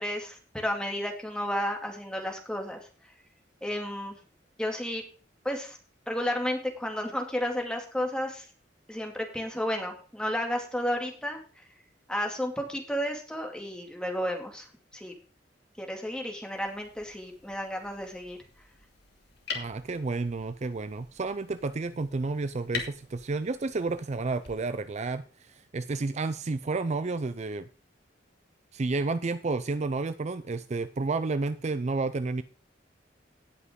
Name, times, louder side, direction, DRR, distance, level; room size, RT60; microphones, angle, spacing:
voice 1, 0.0-2.8 3.6-4.2 4.6-5.0 5.4-5.8 6.1-8.5 8.9-11.4 12.1-14.7 14.9-15.1 15.8-18.4, equal, 5° left, 2 dB, 2.4 m, -32 dB
sound 1, 16.5-24.5, left 5 dB, 65° left, 2.5 m, -44 dB
voice 2, 19.5-27.7 28.7-32.4, right 3 dB, 40° right, 13 dB, 0.5 m, -31 dB
17.5 x 6.0 x 3.7 m, 0.38 s
head